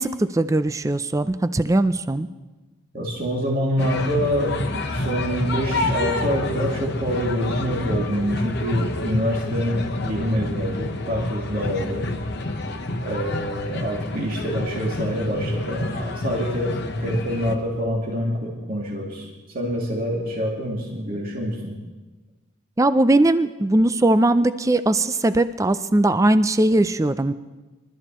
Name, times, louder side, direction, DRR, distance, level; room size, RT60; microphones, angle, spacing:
voice 1, 0.0-2.3 22.8-27.3, right 1 dB, 15° right, 12 dB, 0.4 m, -19 dB
voice 2, 2.9-12.1 13.0-19.3 19.5-21.8, equal, 45° right, -4 dB, 2.6 m, -26 dB
sound 1, 3.8-17.6, left 2 dB, 50° left, 1.0 m, -28 dB
24.5 x 13.0 x 3.0 m, 1.2 s
head